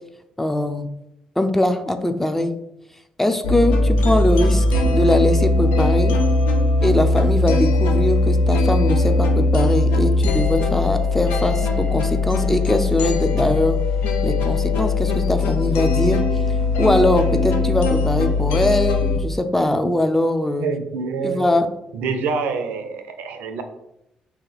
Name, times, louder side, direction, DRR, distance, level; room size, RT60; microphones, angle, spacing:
voice 1, 0.4-0.9 1.4-2.5 3.2-6.1 6.8-13.8 14.2-16.2 16.8-20.7 21.2-21.7, left 1 dB, 10° left, 7 dB, 0.5 m, -21 dB
sound 1, 3.4-19.2, left 2 dB, 80° left, 0.5 m, -19 dB
voice 2, 20.6-21.5 21.9-23.6, right 5 dB, 75° right, 7 dB, 0.5 m, -26 dB
3.1 x 2.8 x 4.0 m, 0.84 s
supercardioid pair, 55°, 3 cm